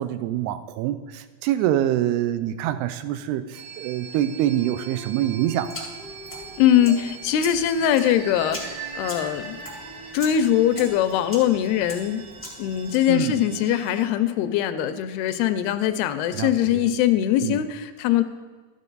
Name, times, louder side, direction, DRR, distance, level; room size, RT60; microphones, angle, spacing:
voice 1, 0.0-5.9 13.1-13.4 16.3-16.8 17.4-17.6, right 12 dB, 90° right, 12 dB, 2.7 m, -25 dB
sound 1, 3.5-14.1, right 6 dB, 70° right, 2.5 m, -41 dB
sound 2, 4.5-10.9, right 1 dB, 50° right, 2.3 m, -45 dB
sound 3, 5.6-13.0, left 1 dB, 15° left, 0.4 m, -41 dB
voice 2, 6.6-9.6 10.1-12.2 12.6-18.2, left 11 dB, 85° left, 10 dB, 2.5 m, -22 dB
13.0 x 9.1 x 3.9 m, 1.4 s
omnidirectional pair, 4.6 m